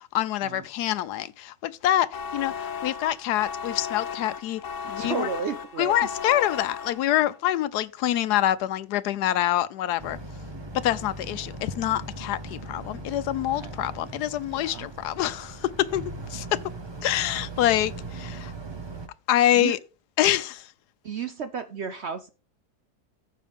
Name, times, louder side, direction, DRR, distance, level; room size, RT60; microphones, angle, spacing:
voice 1, 0.1-5.3 5.8-10.2 10.7-16.6 17.0-18.5 19.3-19.8 20.2-20.7, left 12 dB, 80° left, 1.1 m, -26 dB
sound 1, 2.1-7.4, left 6 dB, 60° left, 0.9 m, -35 dB
voice 2, 5.0-6.0 13.5-13.7 14.5-14.9 19.5-19.8 21.0-22.3, right 6 dB, 60° right, 0.7 m, -33 dB
Boat Water vehicle, 10.0-19.1, right 2 dB, 20° right, 0.7 m, -39 dB
14.5 x 5.7 x 3.6 m
omnidirectional pair, 1.8 m